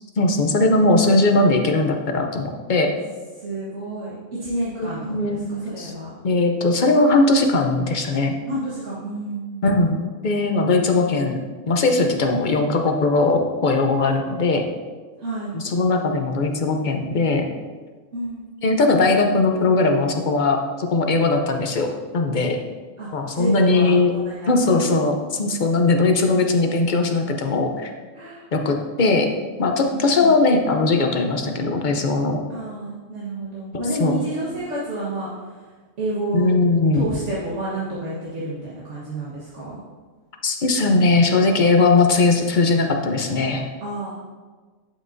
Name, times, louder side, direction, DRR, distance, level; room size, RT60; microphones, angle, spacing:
voice 1, 0.2-2.9 4.7-5.5 5.8-5.9 6.2-8.3 9.6-11.4 11.7-14.6 15.5-17.4 18.6-22.6 23.1-24.1 24.5-27.9 28.5-29.3 29.6-32.4 33.7-34.2 36.3-37.1 40.4-43.7, left 3 dB, 45° left, 4 dB, 0.7 m, -19 dB
voice 2, 3.4-5.0 5.3-6.1 8.5-9.9 15.2-15.6 18.1-18.5 23.0-23.1 23.3-24.8 28.1-28.5 29.9-30.3 32.5-35.6 36.0-36.6 36.9-39.8 43.8-44.1, right 2 dB, 60° right, -9 dB, 1.7 m, -30 dB
11.5 x 5.7 x 2.7 m, 1.4 s
omnidirectional pair, 1.4 m